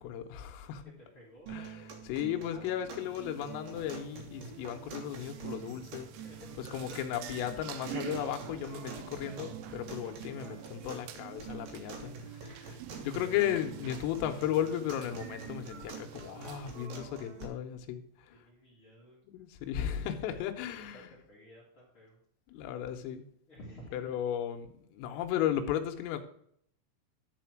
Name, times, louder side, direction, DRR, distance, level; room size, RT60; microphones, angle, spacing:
voice 1, 0.0-0.8 1.5-1.7 2.0-6.1 6.7-12.1 12.6-18.3 19.3-21.1 22.5-23.3 23.9-26.2, left 10 dB, 80° left, 6 dB, 3.4 m, -35 dB
voice 2, 0.8-1.5 6.1-6.6 11.5-12.2 18.0-19.7 20.3-22.2 23.5-24.0 25.1-25.2, equal, 50° left, -5 dB, 1.6 m, -55 dB
sound 1, 1.5-17.5, right 5 dB, 65° right, 2.5 m, -46 dB
sound 2, 3.0-16.9, right 12 dB, 85° right, 2.6 m, -48 dB
11.0 x 4.3 x 5.9 m, 0.67 s
omnidirectional pair, 6.0 m